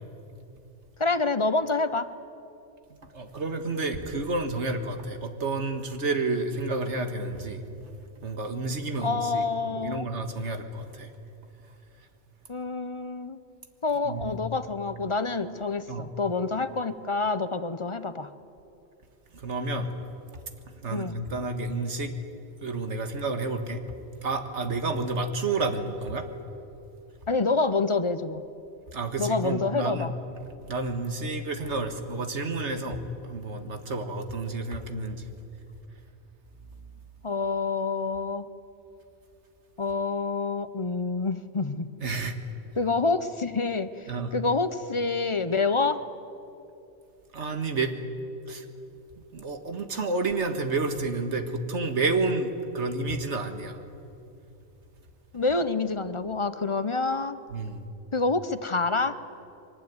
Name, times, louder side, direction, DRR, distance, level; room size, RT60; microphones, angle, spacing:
voice 1, 1.0-2.1 9.0-10.1 12.5-13.4 13.8-18.3 20.9-21.2 27.3-28.4 29.2-30.1 37.2-38.5 39.8-41.9 42.8-46.0 55.3-57.4 58.1-59.1, left 3 dB, 30° left, 13 dB, 0.7 m, -27 dB
voice 2, 2.9-7.6 8.2-11.1 14.1-14.4 15.9-16.1 19.3-19.9 20.8-22.1 22.6-23.8 24.2-26.3 28.9-30.1 30.7-33.0 33.2-35.3 42.0-42.4 44.1-44.3 47.3-47.9 48.5-48.7 49.3-53.8 57.5-57.8, right 3 dB, 85° right, 7 dB, 2.0 m, -30 dB
23.0 x 19.5 x 9.6 m, 2.8 s
omnidirectional pair, 1.2 m